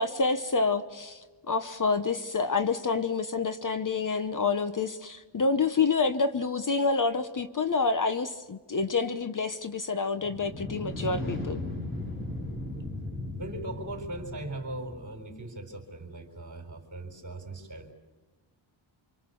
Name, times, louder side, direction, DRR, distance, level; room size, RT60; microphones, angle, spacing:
voice 1, 0.0-11.6, left 4 dB, 40° left, 0.9 m, -28 dB
sound 1, 10.2-15.1, left 1 dB, 25° left, 4.0 m, -36 dB
voice 2, 13.3-17.9, right 1 dB, 35° right, 4.3 m, -39 dB
28.5 x 25.5 x 7.0 m
wide cardioid pair, 160°, 49 cm